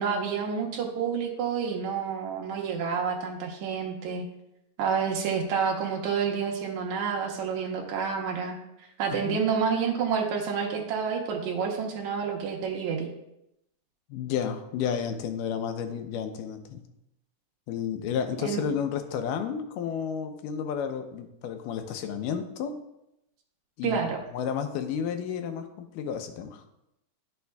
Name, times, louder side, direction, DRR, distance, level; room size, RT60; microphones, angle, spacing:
voice 1, 0.0-4.3 4.8-8.6 9.0-13.1 18.4-18.6 23.8-24.2, right 6 dB, 70° right, 1 dB, 2.2 m, -29 dB
voice 2, 9.1-9.4 14.1-16.8 17.7-22.7 23.8-24.0 24.3-26.6, left 7 dB, 90° left, 7 dB, 2.3 m, -31 dB
12.0 x 5.6 x 2.2 m, 0.85 s
omnidirectional pair, 3.7 m